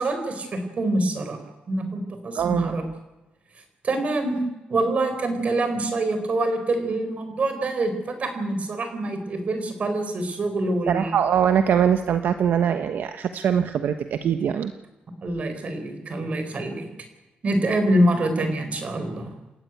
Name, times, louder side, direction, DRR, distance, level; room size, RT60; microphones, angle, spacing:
voice 1, 0.0-1.4 1.7-2.8 3.8-4.4 4.7-11.1 15.2-16.9 17.4-19.3, right 1 dB, 40° right, 7 dB, 4.7 m, -25 dB
voice 2, 2.3-2.7 10.9-14.7, right 8 dB, 75° right, 8 dB, 1.1 m, -22 dB
29.0 x 13.5 x 9.4 m, 1.1 s
wide cardioid pair, 150°, 3 cm